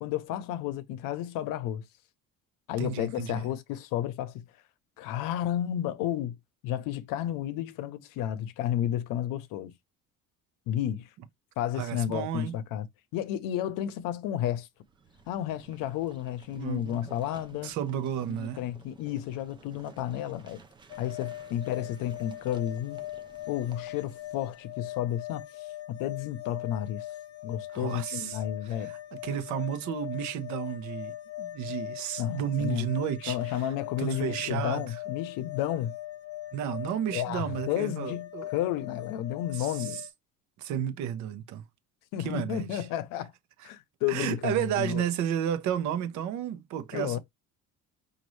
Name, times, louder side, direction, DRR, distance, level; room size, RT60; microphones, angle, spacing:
voice 1, 0.0-1.8 2.7-4.4 5.0-6.4 6.6-9.7 10.7-11.1 11.6-12.9 13.1-14.7 15.3-17.7 18.3-20.6 21.0-23.0 23.5-25.4 25.9-27.1 27.4-28.9 32.2-32.9 33.3-35.9 37.1-40.0 42.1-43.3 43.6-45.0 46.9-47.2, left 11 dB, 75° left, 0.7 m, -32 dB
voice 2, 2.8-3.5 11.7-12.5 16.6-17.1 17.6-18.7 27.7-33.7 34.0-35.0 36.5-38.5 39.5-40.1 40.6-41.6 42.2-42.9 43.6-43.7 44.1-47.2, right 9 dB, 60° right, 0.8 m, -32 dB
sound 1, 14.8-24.8, right 4 dB, 15° right, 0.5 m, -54 dB
sound 2, 20.9-40.1, left 15 dB, 45° left, 0.8 m, -41 dB
5.2 x 2.6 x 3.1 m
cardioid pair, 170°, 33 cm